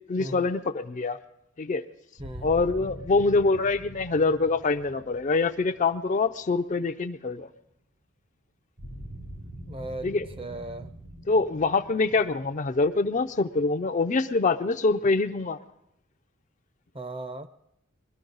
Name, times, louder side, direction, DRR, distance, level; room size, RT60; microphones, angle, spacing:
voice 1, 0.1-1.2 1.6-1.8 2.4-7.5 10.0-10.3 11.3-15.6, left 3 dB, 35° left, 0.4 m, -25 dB
sound 1, 2.2-7.1 8.8-14.4, equal, 85° right, 6.4 m, -44 dB
voice 2, 9.7-10.9 16.9-17.5, right 2 dB, 25° right, 0.6 m, -37 dB
22.0 x 12.5 x 3.9 m
head